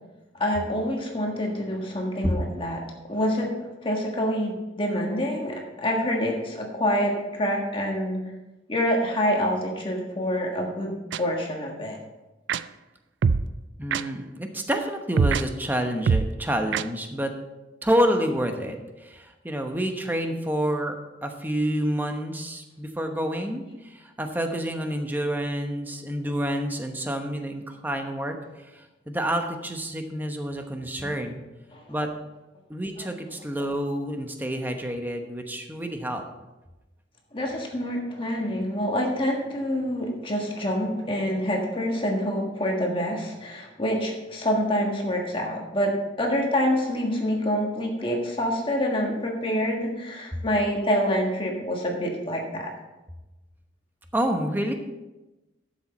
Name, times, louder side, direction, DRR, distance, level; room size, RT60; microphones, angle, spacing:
voice 1, 0.3-2.8 3.1-3.5 3.8-8.2 8.7-12.0 31.0-31.1 31.7-32.0 33.0-33.1 37.3-45.9 46.2-52.7, equal, 30° left, 0 dB, 1.5 m, -26 dB
sound 1, 11.1-11.2 12.5-12.6 13.2-13.5 13.9-14.0 15.2-15.4 16.1-16.3 16.7-16.8, right 5 dB, 75° right, 0.4 m, -21 dB
voice 2, 13.8-17.3 17.8-21.0 21.2-28.4 28.7-31.4 31.9-32.1 32.7-36.2 54.1-54.7, equal, 10° right, 4 dB, 1.0 m, -28 dB
12.0 x 7.4 x 4.3 m, 1.1 s
head